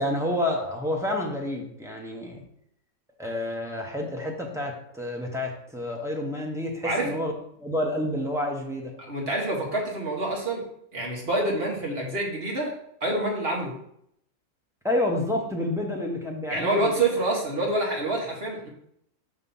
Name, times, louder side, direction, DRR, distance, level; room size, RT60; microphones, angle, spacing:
voice 1, 0.0-2.4 3.2-7.3 7.6-8.9 14.8-17.0, left 1 dB, 5° right, -1 dB, 0.7 m, -29 dB
voice 2, 9.1-10.6 10.9-12.7 13.0-13.7 16.5-18.7, right 2 dB, 40° right, -2 dB, 1.6 m, -27 dB
5.6 x 3.4 x 5.5 m, 0.72 s
omnidirectional pair, 1.6 m